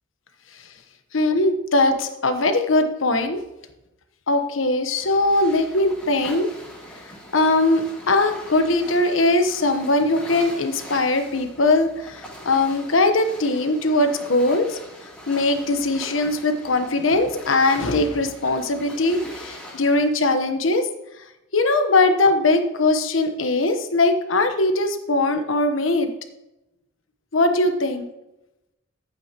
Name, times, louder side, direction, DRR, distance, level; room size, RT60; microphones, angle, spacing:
voice 1, 1.1-3.4 4.3-6.5 7.3-14.8 15.3-20.9 21.2-21.3 21.5-26.1 27.3-28.1, left 2 dB, 80° left, 7 dB, 1.1 m, -20 dB
sound 1, 5.0-20.1, equal, 5° left, 3.1 m, -41 dB
11.5 x 8.8 x 3.0 m, 0.94 s
head